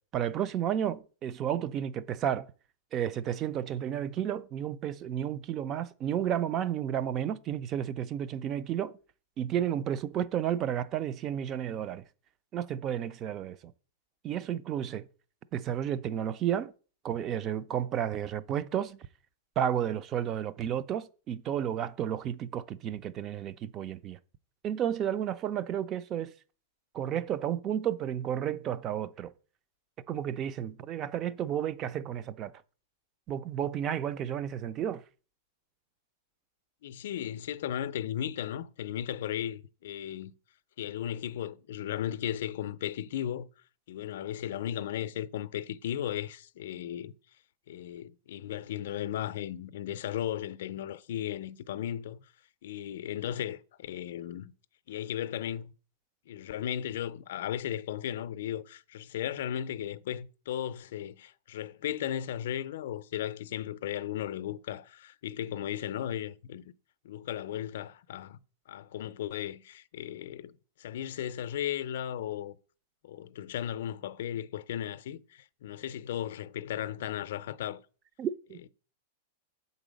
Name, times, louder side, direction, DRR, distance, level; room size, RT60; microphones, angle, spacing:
voice 1, 0.1-2.5 2.9-9.0 9.4-12.0 12.5-13.7 14.2-15.1 15.5-16.7 17.0-19.1 19.6-24.2 24.6-26.3 26.9-29.3 30.1-32.5 33.3-35.0 78.2-78.6, right 10 dB, 25° right, 0.4 m, -32 dB
voice 2, 36.8-40.3 40.8-43.5 43.9-47.1 47.7-52.2 52.6-54.5 54.9-55.7 56.3-66.6 67.0-68.4 68.7-72.6 73.0-77.8, left 11 dB, 70° left, 0.4 m, -36 dB
6.8 x 4.0 x 5.1 m
supercardioid pair, 155°, 0 cm